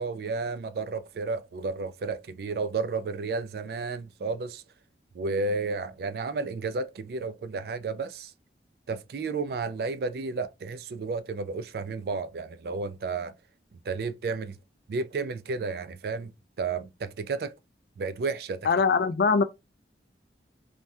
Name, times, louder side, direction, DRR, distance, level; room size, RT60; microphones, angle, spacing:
voice 1, 0.0-4.6 5.1-8.3 8.9-13.3 13.7-14.6 14.9-16.3 16.6-17.5 18.0-18.7, right 4 dB, 60° right, 0.3 m, -32 dB
voice 2, 18.6-19.4, left 5 dB, 60° left, 0.3 m, -22 dB
3.3 x 2.2 x 2.6 m
head